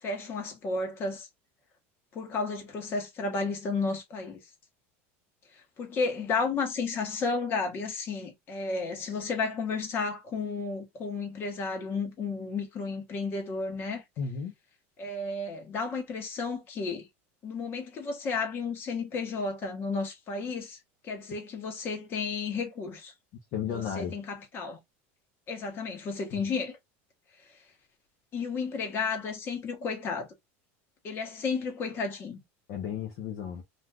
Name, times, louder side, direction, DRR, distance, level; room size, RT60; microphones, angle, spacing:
voice 1, 0.0-1.3 2.1-4.4 5.8-14.0 15.0-17.1 17.4-20.8 21.0-23.1 23.7-24.8 25.5-26.8 28.3-30.3 31.0-32.4, left 4 dB, 30° left, 1.1 m, -32 dB
voice 2, 14.2-14.5 23.5-24.2 26.3-26.4 32.7-33.6, left 7 dB, 50° left, 0.7 m, -34 dB
2.5 x 2.3 x 3.4 m
supercardioid pair, 155°, 7 cm